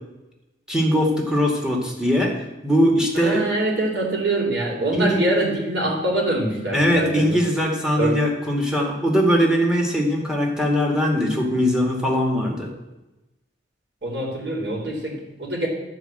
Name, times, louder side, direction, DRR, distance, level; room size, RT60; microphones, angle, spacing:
voice 1, 0.7-2.3 2.6-3.4 4.9-5.2 6.7-12.7, equal, 5° right, -1 dB, 2.0 m, -21 dB
voice 2, 3.1-7.4 8.0-8.1 14.0-15.7, right 1 dB, 85° right, -1 dB, 3.4 m, -24 dB
12.0 x 4.9 x 7.8 m, 1.0 s
head